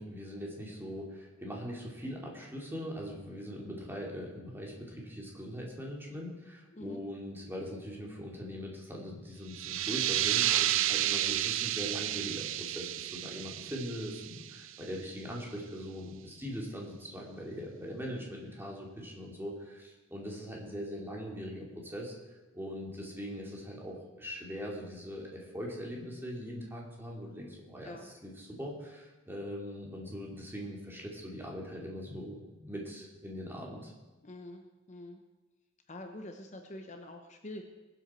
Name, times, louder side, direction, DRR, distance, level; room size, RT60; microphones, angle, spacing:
voice 1, 0.0-22.2 22.5-33.9, equal, 10° right, -2 dB, 2.6 m, -41 dB
sound 1, 9.5-14.9, right 13 dB, 75° right, 0.5 m, -31 dB
voice 2, 34.2-34.6 34.9-35.2 35.9-37.6, left 1 dB, 35° left, 5 dB, 0.9 m, -45 dB
21.5 x 8.0 x 4.4 m, 1.2 s
head